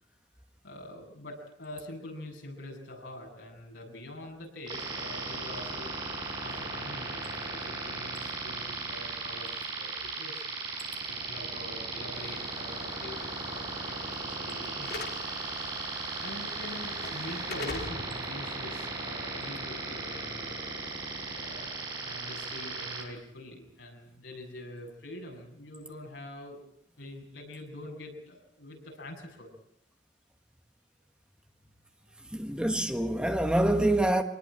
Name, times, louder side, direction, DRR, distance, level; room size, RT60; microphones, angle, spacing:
voice 1, 0.6-5.9 6.4-10.6 11.1-15.2 16.2-20.7 21.3-26.6 27.0-29.5 32.3-32.4, left 1 dB, 75° left, 7.8 m, -45 dB
sound 1, 4.7-23.0, right 3 dB, 25° right, 6.3 m, -36 dB
Slam / Alarm, 12.1-20.2, left 3 dB, 60° left, 2.5 m, -45 dB
voice 2, 32.3-34.2, right 1 dB, 5° right, 1.4 m, -26 dB
25.0 x 20.0 x 8.9 m
head